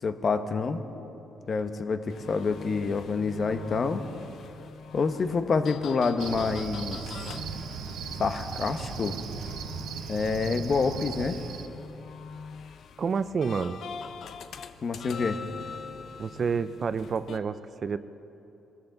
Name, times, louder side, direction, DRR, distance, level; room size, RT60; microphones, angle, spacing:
voice 1, 0.0-0.8 1.5-4.0 4.9-7.0 8.2-9.1 10.1-11.4 14.8-15.4, left 4 dB, 45° left, 8 dB, 0.9 m, -27 dB
sound 1, 2.1-17.4, left 5 dB, 65° left, 0.7 m, -43 dB
Cricket, 6.2-11.7, right 7 dB, 80° right, 0.8 m, -38 dB
voice 2, 13.0-13.8 16.2-18.0, right 5 dB, 45° right, 13 dB, 0.5 m, -29 dB
21.5 x 13.5 x 3.9 m, 3.0 s
cardioid pair, 90°, 0 cm